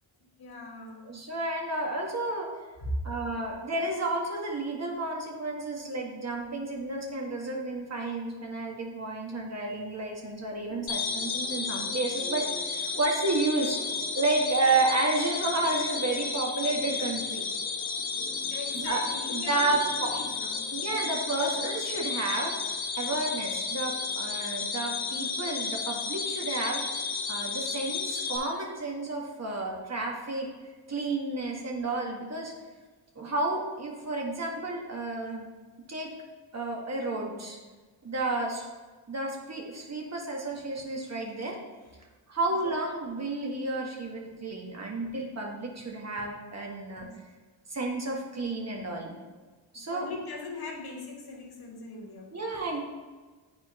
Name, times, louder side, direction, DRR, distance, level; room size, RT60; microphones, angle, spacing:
voice 1, 0.2-1.2 2.8-3.0 3.3-3.6 18.5-21.1 24.0-24.1 25.0-25.1 42.5-42.6 47.0-47.1 49.7-52.3, left 2 dB, 50° left, 0 dB, 1.7 m, -40 dB
voice 2, 1.0-2.5 3.0-13.8 14.1-17.4 18.7-19.0 19.3-20.2 20.7-22.6 23.0-26.8 27.3-30.5 30.9-32.5 33.2-35.5 35.9-36.1 36.5-37.6 38.0-38.7 39.1-41.6 42.3-47.1 47.7-49.1 49.7-50.1 52.3-52.8, right 2 dB, 35° right, -1 dB, 1.8 m, -31 dB
sound 1, 10.7-22.5, right 1 dB, 15° right, 1.7 m, -50 dB
sound 2, 10.9-28.4, left 4 dB, 70° left, 1.0 m, -33 dB
9.3 x 4.3 x 3.0 m, 1.3 s
supercardioid pair, 60°, 47 cm